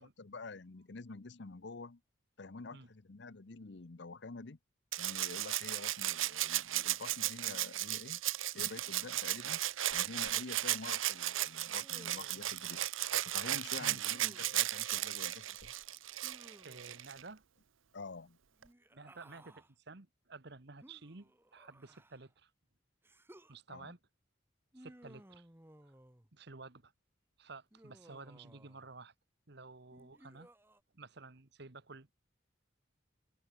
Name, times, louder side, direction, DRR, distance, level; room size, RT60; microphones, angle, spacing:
voice 1, 0.0-2.0 2.4-4.6 5.0-8.2 8.5-9.6 9.9-12.8 13.2-15.7 17.9-18.4 23.7-23.9, left 3 dB, 60° left, 0.8 m, -48 dB
Rattle (instrument), 4.9-17.2 18.6-18.7, right 14 dB, 85° right, 1.0 m, -35 dB
Human voice, 11.7-12.6 14.0-14.7 16.2-17.0 18.6-19.7 20.8-22.3 23.0-23.6 24.7-26.3 27.7-28.9 29.9-30.8, right 1 dB, 10° right, 1.3 m, -59 dB
voice 2, 16.6-17.4 18.9-22.5 23.5-24.0 24.8-25.5 25.8-25.9 26.3-26.9 27.4-29.1 29.5-30.5 30.9-32.1, right 3 dB, 55° right, 1.3 m, -52 dB
head